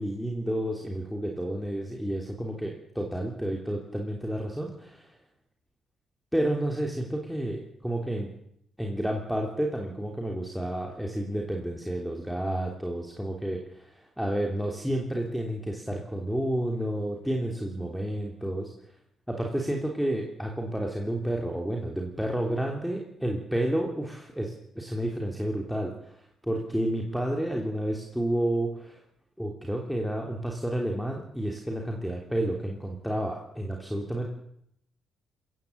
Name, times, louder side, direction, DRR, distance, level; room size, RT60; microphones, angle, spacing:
voice 1, 0.0-5.1 6.3-8.3 8.8-18.7 19.3-26.2 26.4-29.0 29.4-34.3, right 1 dB, ahead, 0 dB, 3.4 m, -30 dB
20.5 x 15.5 x 8.1 m, 0.74 s
cardioid pair, 90°, 0 cm